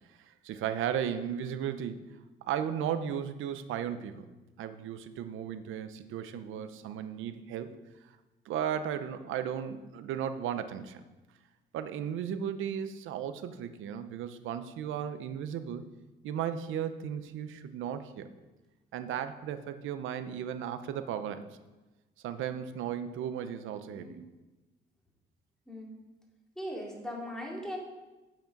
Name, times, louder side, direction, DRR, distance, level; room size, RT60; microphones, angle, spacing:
voice 1, 0.3-2.0 2.5-4.3 4.6-7.8 8.5-11.0 11.7-15.9 16.2-18.3 18.9-21.6 22.2-24.2, right 9 dB, 85° right, 11 dB, 0.7 m, -35 dB
voice 2, 26.6-27.8, equal, 5° left, -2 dB, 2.6 m, -39 dB
8.1 x 7.4 x 5.3 m, 1.1 s
cardioid pair, 90°, 20 cm